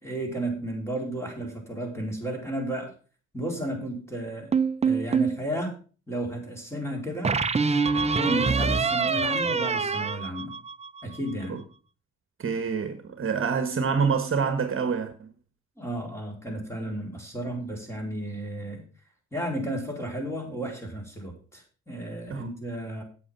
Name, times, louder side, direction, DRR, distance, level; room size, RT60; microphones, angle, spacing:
voice 1, 0.0-2.9 3.3-4.5 4.8-5.8 6.1-7.4 7.9-10.6 11.0-11.6 15.8-18.8 19.3-23.0, right 1 dB, 10° left, 4.4 m, -33 dB
sound 1, 4.5-5.4 7.2-11.0, right 5 dB, 20° right, 0.8 m, -25 dB
voice 2, 12.4-15.3 22.3-22.5, right 5 dB, 45° right, 1.4 m, -27 dB
8.5 x 8.4 x 5.6 m
cardioid pair, 90°, 30 cm